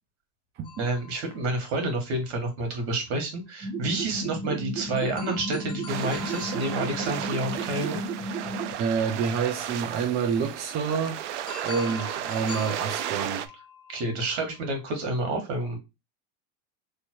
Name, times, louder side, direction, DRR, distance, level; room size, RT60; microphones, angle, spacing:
sound 1, 0.6-2.4 5.0-8.9 11.5-14.9, left 6 dB, 15° left, 0.9 m, -45 dB
voice 1, 0.8-8.0 13.9-15.8, right 2 dB, 65° right, 1.9 m, -29 dB
sound 2, 3.6-8.7, right 2 dB, 10° right, 1.6 m, -34 dB
sound 3, 5.9-13.5, right 11 dB, 85° right, 0.6 m, -34 dB
voice 2, 8.8-11.2 11.6-13.5, right 6 dB, 30° right, 0.5 m, -28 dB
3.2 x 2.8 x 4.5 m
supercardioid pair, 145°, 34 cm